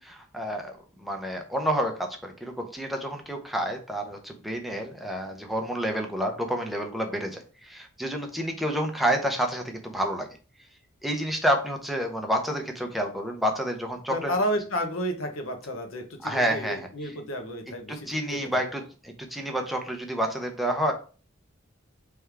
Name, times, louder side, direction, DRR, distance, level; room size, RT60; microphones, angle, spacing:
voice 1, 0.0-10.3 11.0-14.3 16.2-17.1 18.1-20.9, equal, ahead, 2 dB, 0.6 m, -29 dB
voice 2, 14.1-18.6, equal, 85° left, 5 dB, 0.9 m, -31 dB
3.5 x 3.3 x 4.6 m, 0.37 s
head